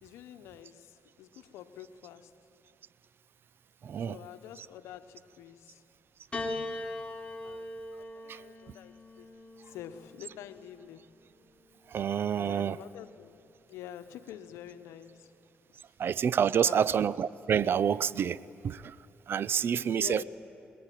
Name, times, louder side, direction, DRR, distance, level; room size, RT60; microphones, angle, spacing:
voice 1, 0.0-2.3 4.0-5.8 7.4-7.7 8.1-9.3 9.7-11.2 12.4-13.4 13.7-15.3 16.6-16.9 19.9-20.2, left 11 dB, 85° left, 1.0 m, -47 dB
voice 2, 3.8-4.2 8.3-8.4 11.9-12.8 16.0-18.4 18.6-19.0 19.3-20.2, right 8 dB, 55° right, 0.5 m, -28 dB
Piano, 6.3-10.8 11.8-12.6, left 2 dB, 25° left, 3.1 m, -41 dB
24.5 x 21.0 x 9.2 m
cardioid pair, 75°, 5 cm